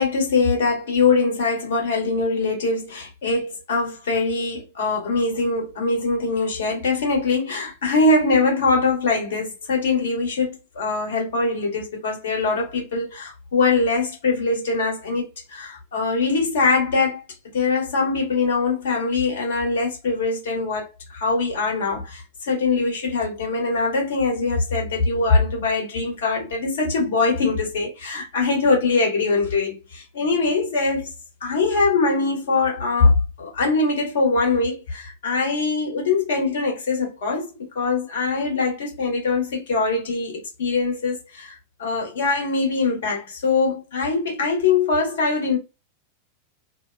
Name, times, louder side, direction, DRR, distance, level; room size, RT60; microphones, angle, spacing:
voice 1, 0.0-15.2 15.5-17.2 17.5-31.1 31.4-41.5 41.8-45.6, left 3 dB, 60° left, 1.2 m, -22 dB
2.7 x 2.2 x 2.3 m
figure-of-eight pair, 90°, 0 cm